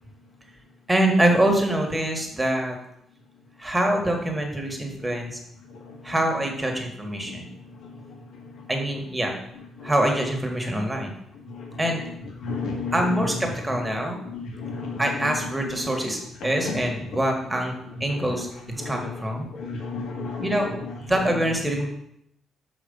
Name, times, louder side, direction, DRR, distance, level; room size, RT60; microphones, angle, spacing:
voice 1, 0.9-2.8 3.6-5.4 6.0-7.5 8.7-9.4 9.8-11.1 11.8-12.0 12.9-14.2 15.0-17.8 18.0-18.5 18.9-19.5 20.4-20.7 21.1-21.9, right 1 dB, 10° right, 2 dB, 1.7 m, -24 dB
voice 2, 5.6-6.1 7.2-8.7 9.8-9.9 11.4-12.1 12.4-13.3 13.7-15.5 15.8-15.9 16.4-17.2 17.9-21.3, left 3 dB, 75° left, -2 dB, 1.6 m, -34 dB
6.1 x 5.1 x 5.4 m, 0.76 s
cardioid pair, 90°, 0 cm